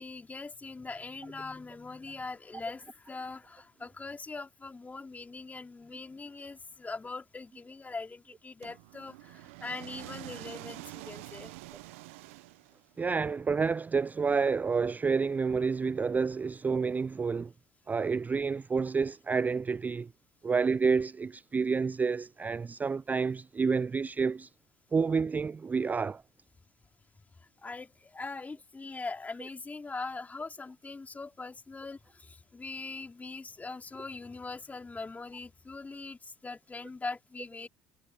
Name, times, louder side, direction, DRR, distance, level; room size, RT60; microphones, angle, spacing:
voice 1, 0.0-11.5 27.4-37.7, left 3 dB, 20° left, 2.8 m, -42 dB
sound 1, 8.6-13.0, right 23 dB, 80° right, 0.5 m, -46 dB
voice 2, 13.0-17.5 17.9-20.1 20.4-24.5 24.9-26.2, right 5 dB, 25° right, 0.3 m, -29 dB
hypercardioid pair, 65°, 7 cm